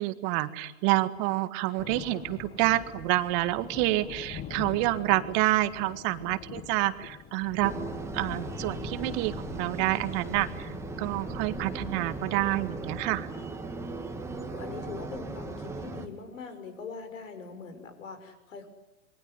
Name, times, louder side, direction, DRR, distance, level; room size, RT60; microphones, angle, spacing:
voice 1, 0.0-7.7 8.1-13.3, right 18 dB, 40° right, 12 dB, 1.8 m, -28 dB
Thunder, 1.8-14.8, left 8 dB, 25° left, 1.7 m, -44 dB
sound 1, 7.6-16.1, right 3 dB, 5° right, 2.6 m, -38 dB
voice 2, 14.5-18.7, left 5 dB, 70° left, 9 dB, 6.1 m, -42 dB
26.5 x 23.0 x 9.7 m, 0.97 s
hypercardioid pair, 110°, 40 cm